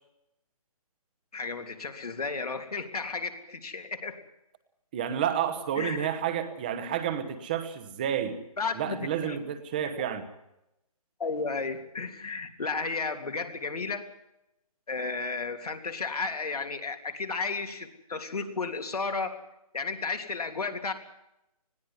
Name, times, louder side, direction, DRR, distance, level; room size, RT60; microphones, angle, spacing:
voice 1, 1.3-4.2 5.8-6.1 8.6-9.4 10.0-10.1 11.2-14.1 14.9-19.4 19.7-20.9, left 4 dB, 80° left, 6 dB, 3.2 m, -33 dB
voice 2, 4.9-8.4 8.7-10.3, right 9 dB, 15° right, 10 dB, 1.1 m, -30 dB
20.5 x 15.5 x 9.7 m, 0.87 s
hypercardioid pair, 175°, 19 cm